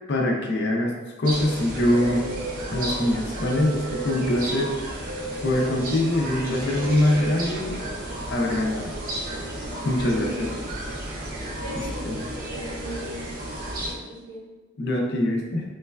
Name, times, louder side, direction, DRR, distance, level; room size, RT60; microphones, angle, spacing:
voice 1, 0.1-0.9 1.2-2.3 2.7-5.0 5.4-7.8 8.3-8.9 9.8-10.3 11.7-12.2 14.8-15.6, left 1 dB, 55° left, 0 dB, 0.4 m, -23 dB
sound 1, 1.2-13.9, right 1 dB, 40° right, 0.5 m, -32 dB
voice 2, 10.1-10.5 11.6-13.5 13.9-14.4, equal, 70° right, -5 dB, 0.9 m, -37 dB
3.1 x 2.2 x 2.2 m, 1.3 s
head